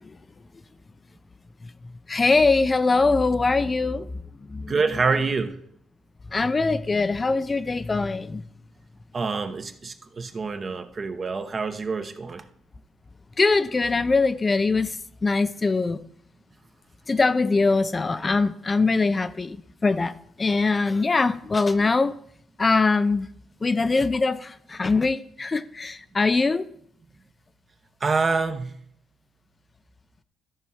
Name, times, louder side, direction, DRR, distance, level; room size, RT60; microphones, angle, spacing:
voice 1, 2.1-4.1 4.5-4.7 6.3-8.4 13.4-16.0 17.1-19.6 19.8-22.1 22.6-23.3 23.6-26.7, left 3 dB, 30° left, 0.5 m, -22 dB
voice 2, 4.7-5.5 9.1-12.4 28.0-28.7, right 4 dB, 40° right, 1.0 m, -26 dB
13.5 x 4.7 x 5.6 m
cardioid pair, 90°, 0 cm